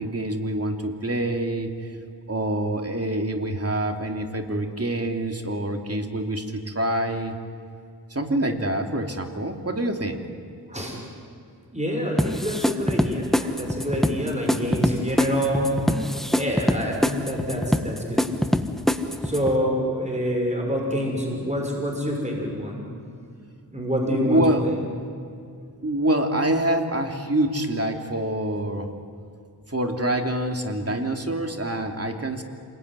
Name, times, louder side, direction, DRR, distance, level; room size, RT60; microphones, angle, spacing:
voice 1, 0.0-1.7 2.3-7.4 8.1-10.2 24.1-24.6 25.8-28.9 29.7-32.4, right 1 dB, 35° right, 3 dB, 2.9 m, -26 dB
voice 2, 10.7-11.0 11.7-16.0 16.3-18.2 19.2-22.8 23.7-24.7, equal, 15° right, 0 dB, 6.4 m, -26 dB
sound 1, 12.2-19.6, left 1 dB, ahead, 1.5 m, -24 dB
28.0 x 21.0 x 9.8 m, 2.3 s
wide cardioid pair, 60°, 40 cm